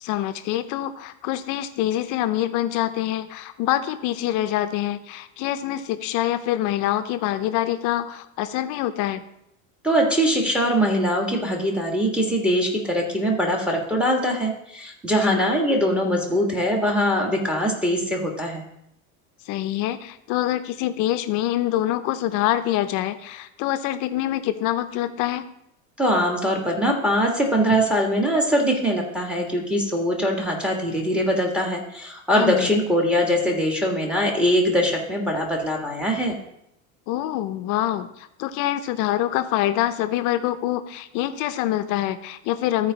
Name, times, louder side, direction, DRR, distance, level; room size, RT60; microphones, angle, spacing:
voice 1, 0.0-9.2 15.1-15.4 19.5-25.4 32.3-32.7 37.1-38.1 38.4-42.9, left 13 dB, 55° left, 11 dB, 0.7 m, -25 dB
voice 2, 9.8-18.6 26.0-36.4, equal, 5° right, 0 dB, 1.5 m, -22 dB
14.0 x 4.7 x 4.0 m, 0.78 s
supercardioid pair, 135°, 36 cm